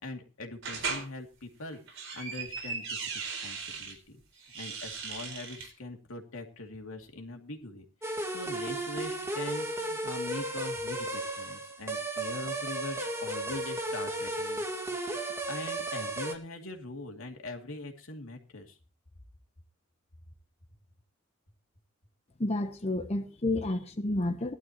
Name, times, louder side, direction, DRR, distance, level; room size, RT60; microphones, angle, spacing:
voice 1, 0.0-4.2 4.5-15.0 15.5-18.8, left 2 dB, 80° left, 2.5 m, -42 dB
sound 1, 0.6-1.1 1.7-3.9 4.4-5.7, right 5 dB, 65° right, 4.4 m, -37 dB
sound 2, 8.0-16.3, right 1 dB, 15° right, 1.7 m, -34 dB
voice 2, 22.4-24.5, left 2 dB, 30° left, 0.9 m, -30 dB
19.0 x 12.0 x 2.9 m
head